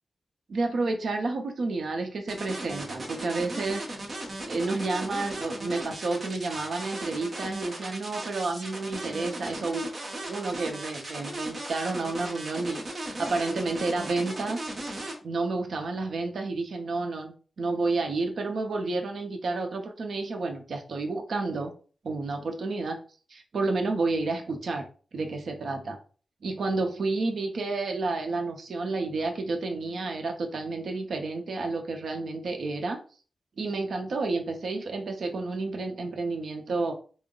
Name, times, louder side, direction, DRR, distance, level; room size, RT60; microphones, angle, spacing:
voice 1, 0.5-4.0 4.4-9.9 10.3-14.7 15.2-21.7 22.0-23.0 23.3-24.9 25.1-26.0 26.4-33.0 33.6-36.9, right 3 dB, 60° right, 3 dB, 0.6 m, -30 dB
sound 1, 2.3-15.1, right 1 dB, 30° right, 0.8 m, -37 dB
3.6 x 2.1 x 3.7 m, 0.40 s
wide cardioid pair, 165°, 0 cm